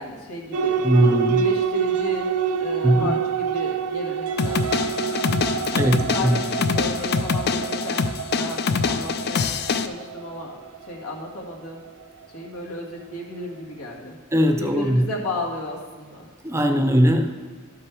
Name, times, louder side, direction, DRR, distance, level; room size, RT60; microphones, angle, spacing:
voice 1, 0.0-2.3 2.6-5.1 5.7-10.6 10.9-11.8 12.3-14.2 14.6-16.3, left 2 dB, 90° left, -2 dB, 2.0 m, -34 dB
sound 1, 0.5-12.5, right 7 dB, 75° right, 0.5 m, -27 dB
voice 2, 0.8-1.4 2.8-3.1 5.7-6.4 14.3-15.0 16.4-17.3, equal, 15° right, 6 dB, 0.6 m, -19 dB
sound 2, 4.4-9.9, left 5 dB, 50° left, 0.4 m, -24 dB
12.5 x 6.0 x 4.7 m, 1.5 s
head